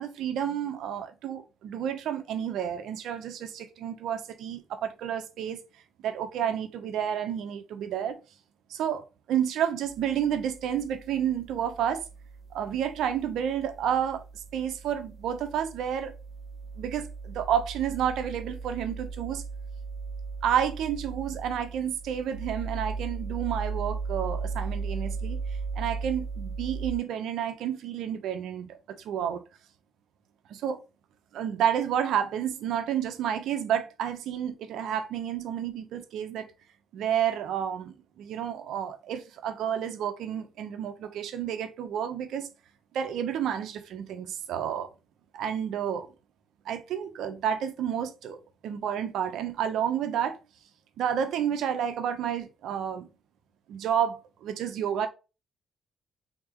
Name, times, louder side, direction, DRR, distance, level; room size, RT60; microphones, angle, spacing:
voice 1, 0.0-5.6 6.0-8.2 8.7-12.0 12.5-14.2 14.5-16.1 16.8-19.4 20.4-25.4 25.7-29.4 30.5-30.8 31.3-36.5 36.9-42.5 42.9-44.9 45.3-46.1 46.6-50.4 51.0-53.1 53.7-55.1, right 9 dB, 80° right, 0.9 m, -30 dB
sound 1, 9.9-26.9, right 4 dB, 40° right, 1.9 m, -37 dB
4.4 x 3.9 x 3.1 m
cardioid pair, 90°, 0 cm